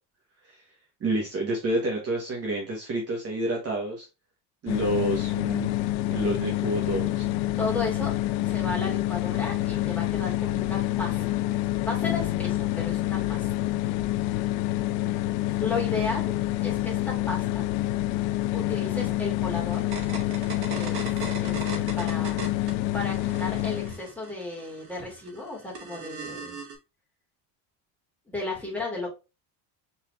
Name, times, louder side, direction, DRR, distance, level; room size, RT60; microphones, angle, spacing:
voice 1, 1.0-4.1 4.6-5.8 6.1-7.3, right 2 dB, 30° right, -1 dB, 1.4 m, -29 dB
sound 1, 4.7-24.0, left 15 dB, 80° left, 0.6 m, -27 dB
voice 2, 7.6-8.1 8.4-11.2 11.8-13.5 15.6-16.3 16.6-17.6 18.5-19.8 20.7-21.1 21.4-22.4 22.9-26.6 28.3-29.1, left 3 dB, 5° left, -5 dB, 2.8 m, -34 dB
sound 2, 12.0-15.0, left 13 dB, 40° left, 0.6 m, -40 dB
sound 3, 19.7-22.7 23.0-26.8, right 5 dB, 50° right, 2.0 m, -38 dB
4.5 x 4.2 x 2.5 m, 0.27 s
cardioid pair, 145°, 47 cm